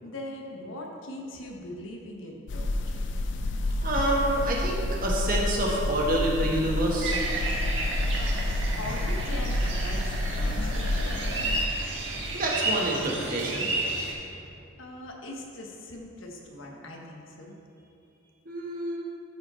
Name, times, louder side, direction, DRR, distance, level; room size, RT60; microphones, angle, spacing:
voice 1, 0.0-2.7 8.2-11.5 14.8-17.6, left 1 dB, 80° left, 0 dB, 1.2 m, -41 dB
sound 1, 2.5-11.7, left 1 dB, 65° left, 0.5 m, -29 dB
voice 2, 3.8-7.2 12.3-13.7 18.4-19.0, right 1 dB, 45° right, -2 dB, 1.4 m, -27 dB
sound 2, 7.0-14.1, right 2 dB, 65° right, 1.5 m, -32 dB
13.5 x 4.9 x 4.3 m, 2.7 s
head